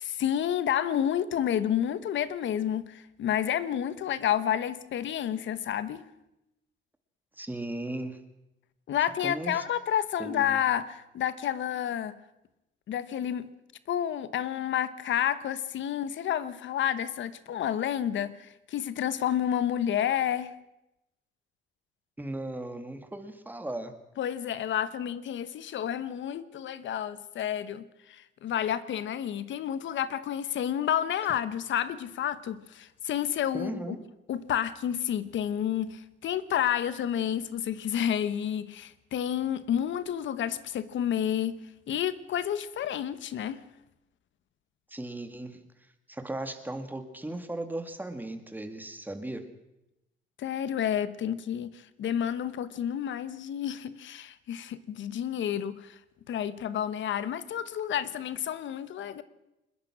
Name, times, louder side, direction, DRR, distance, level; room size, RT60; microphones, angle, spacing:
voice 1, 0.0-6.0 8.9-12.2 12.9-13.5 13.9-20.5 24.2-34.0 34.3-41.5 41.9-43.6 50.4-55.9 56.3-59.2, left 10 dB, 70° left, 14 dB, 1.2 m, -30 dB
voice 2, 7.3-8.2 9.2-9.6 10.2-10.6 22.2-23.9 33.5-34.0 44.9-45.6 46.1-49.5, right 1 dB, 10° right, 7 dB, 2.5 m, -36 dB
21.5 x 21.0 x 6.2 m, 0.91 s
cardioid pair, 90°, 20 cm